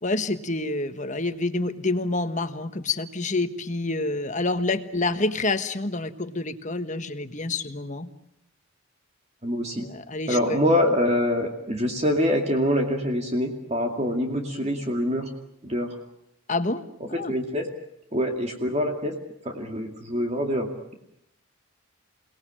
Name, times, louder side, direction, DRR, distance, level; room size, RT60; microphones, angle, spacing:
voice 1, 0.0-8.1 9.8-10.6 16.5-16.8 17.1-17.3, left 2 dB, 35° left, 10 dB, 1.4 m, -28 dB
voice 2, 9.4-9.9 10.3-15.3 15.6-15.9 17.1-17.7 18.1-19.1 19.4-21.0, equal, 30° right, 3 dB, 2.4 m, -25 dB
29.0 x 19.0 x 9.0 m, 0.77 s
head